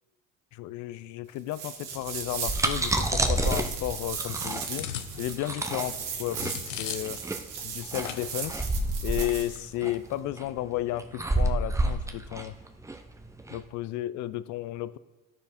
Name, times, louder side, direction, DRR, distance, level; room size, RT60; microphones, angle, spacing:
voice 1, 0.5-4.9 5.2-7.2 7.6-8.7 9.0-12.5 13.5-15.0, left 14 dB, 50° left, 15 dB, 0.5 m, -33 dB
sound 1, 1.5-9.6, right 7 dB, 75° right, 1.5 m, -37 dB
sound 2, 2.2-13.6, right 2 dB, 10° right, 0.8 m, -29 dB
sound 3, 3.4-7.3 7.6-7.7 8.0-8.6 8.9-9.2, left 10 dB, 90° left, 0.7 m, -40 dB
12.0 x 4.5 x 5.1 m, 1.2 s
hypercardioid pair, 75°, 37 cm